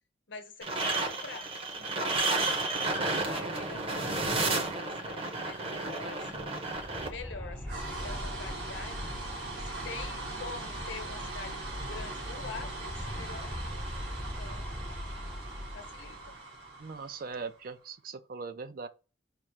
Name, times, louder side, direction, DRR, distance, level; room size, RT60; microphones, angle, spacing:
voice 1, 0.3-2.6 3.2-6.5 7.1-9.0 9.5-13.8 14.2-14.7 15.7-16.4, left 4 dB, 75° left, 0.9 m, -46 dB
sound 1, 0.6-7.1, right 2 dB, 30° right, 0.9 m, -31 dB
sound 2, 6.2-11.4 11.7-11.8 12.0-16.4, left 1 dB, 5° left, 0.4 m, -42 dB
sound 3, 7.2-17.7, right 2 dB, 70° right, 1.8 m, -40 dB
voice 2, 16.8-18.9, right 4 dB, 50° right, 0.5 m, -40 dB
5.1 x 2.0 x 4.5 m
head